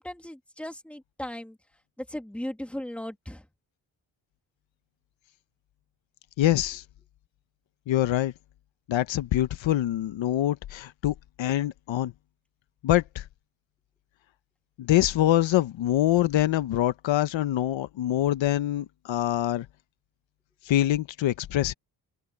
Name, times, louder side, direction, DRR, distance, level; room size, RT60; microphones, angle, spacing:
voice 1, 0.0-1.6 2.0-3.4, left 1 dB, 5° left, 1.9 m, -37 dB
voice 2, 6.4-6.8 7.9-8.3 8.9-12.1 12.8-13.2 14.8-19.7 20.6-21.7, left 13 dB, 75° left, 1.0 m, -25 dB
open air
cardioid pair, 140°, 46 cm